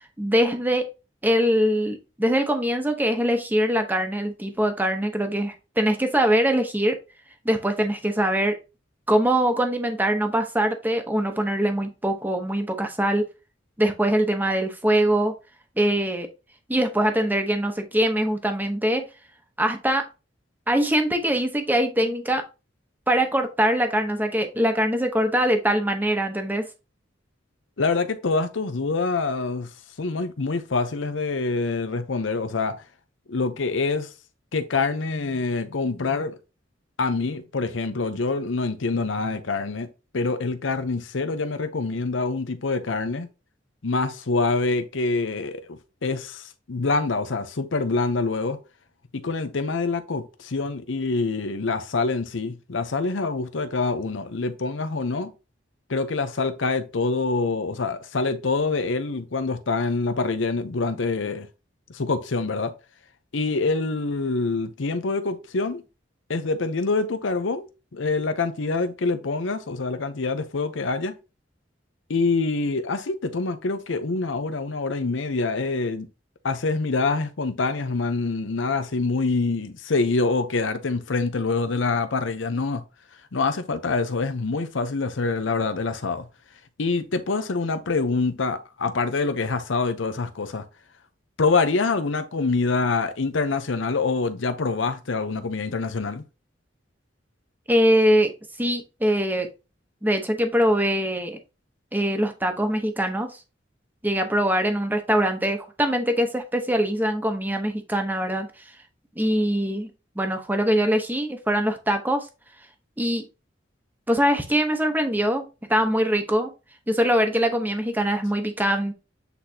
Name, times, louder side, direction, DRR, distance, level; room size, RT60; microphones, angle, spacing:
voice 1, 0.2-0.9 1.2-7.0 7.4-8.6 9.1-13.3 13.8-15.3 15.8-16.3 16.7-19.1 19.6-20.0 20.7-22.4 23.1-26.7 97.7-98.3 98.6-99.5 100.0-101.4 101.9-103.4 104.0-108.5 109.2-109.9 110.2-112.3 113.0-113.2 114.1-116.5 116.9-118.9, equal, 10° right, 0.9 m, -23 dB
voice 2, 27.8-29.7 30.0-32.8 33.3-34.1 34.5-36.4 37.0-39.9 40.1-43.3 43.8-48.6 49.1-55.3 55.9-61.5 61.9-62.7 63.3-65.8 66.3-71.1 72.1-76.1 76.4-82.8 83.3-86.3 86.8-90.6 91.4-96.2, left 3 dB, 90° left, 0.7 m, -25 dB
8.3 x 4.1 x 2.8 m
head